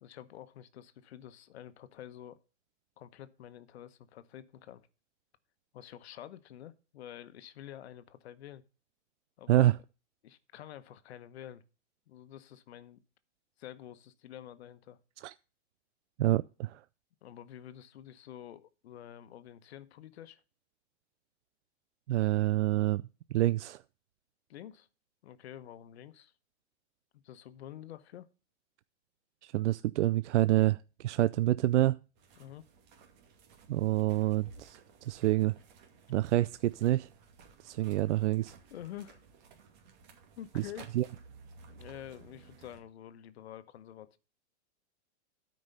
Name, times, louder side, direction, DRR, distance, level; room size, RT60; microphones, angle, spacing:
voice 1, 0.0-2.4 3.0-4.8 5.7-8.6 9.4-9.7 10.2-11.6 12.1-13.0 13.6-15.0 17.2-20.4 24.5-24.9 25.2-26.3 27.1-28.3 32.4-32.7 38.7-39.2 40.4-40.9 41.7-44.2, left 11 dB, 65° left, 1.2 m, -48 dB
voice 2, 16.2-16.8 22.1-23.0 23.3-23.8 29.4-32.0 33.7-35.5 36.1-37.1 37.6-38.5 40.6-40.7 40.9-41.0, right 15 dB, 85° right, 0.5 m, -27 dB
sound 1, 32.2-42.8, right 4 dB, 40° right, 2.5 m, -56 dB
12.5 x 5.4 x 5.4 m
supercardioid pair, 165°, 34 cm